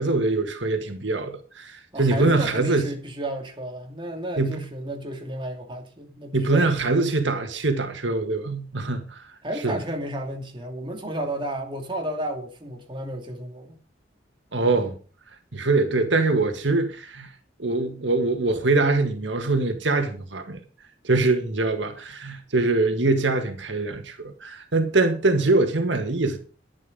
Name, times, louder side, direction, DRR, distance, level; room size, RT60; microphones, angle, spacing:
voice 1, 0.0-2.9 4.4-4.6 6.3-9.2 9.6-9.8 14.5-14.9 15.5-17.3 17.6-20.6 21.0-26.4, right 3 dB, 80° right, 1.8 m, -23 dB
voice 2, 1.9-7.1 9.4-13.8, right 1 dB, 30° right, 2.6 m, -32 dB
11.0 x 11.0 x 5.4 m
head